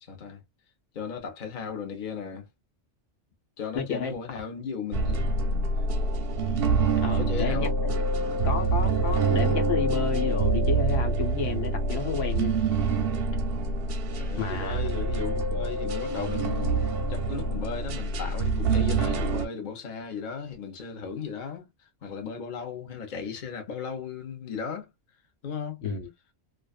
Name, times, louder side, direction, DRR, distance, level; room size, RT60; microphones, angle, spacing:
voice 1, 0.0-0.4 0.9-2.5 3.6-5.2 7.2-7.8 14.1-16.8 17.1-24.9 25.4-25.8, left 6 dB, 45° left, 0.8 m, -36 dB
voice 2, 3.8-4.1 7.0-12.5 14.4-14.9 25.8-26.1, left 6 dB, 75° left, 1.2 m, -32 dB
sound 1, 4.9-19.5, right 3 dB, 60° right, 0.7 m, -26 dB
2.4 x 2.3 x 2.3 m
omnidirectional pair, 1.3 m